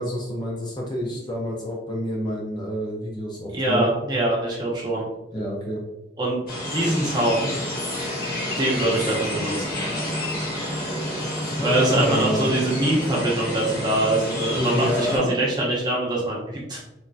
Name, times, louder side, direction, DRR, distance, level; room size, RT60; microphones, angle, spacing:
voice 1, 0.0-3.9 5.3-5.8 11.4-12.5 14.6-15.3, equal, 25° left, -2 dB, 0.4 m, -28 dB
voice 2, 3.5-5.0 6.2-7.6 8.6-9.7 10.5-10.6 11.6-16.8, right 1 dB, 25° right, -4 dB, 0.8 m, -24 dB
sound 1, 6.5-15.2, left 1 dB, 55° left, 1.2 m, -29 dB
3.2 x 2.6 x 2.3 m, 0.94 s
head